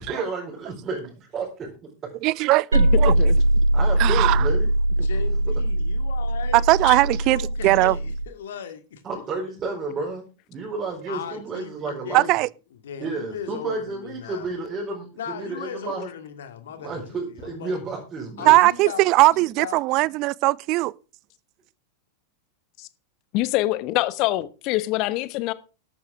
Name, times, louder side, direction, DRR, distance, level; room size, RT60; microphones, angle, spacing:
voice 1, 0.0-1.7 3.7-4.7 5.0-5.2 9.0-10.2 10.5-12.3 13.0-16.1 16.8-18.6, right 3 dB, 25° right, 4.3 m, -31 dB
voice 2, 2.2-2.7 3.0-3.1 4.0-4.5 6.5-7.9 12.1-12.5 18.5-20.9, right 20 dB, 40° right, 0.5 m, -19 dB
voice 3, 2.7-3.4 6.8-6.9 22.8-22.9 23.3-25.5, left 17 dB, 40° left, 1.1 m, -25 dB
sound 1, 2.7-8.2, right 1 dB, 75° right, 0.9 m, -21 dB
voice 4, 5.0-9.0 11.1-12.5 12.8-14.5 15.2-17.7 18.4-19.8, left 8 dB, 60° left, 2.3 m, -38 dB
13.5 x 12.0 x 3.5 m
figure-of-eight pair, 90°, 0 cm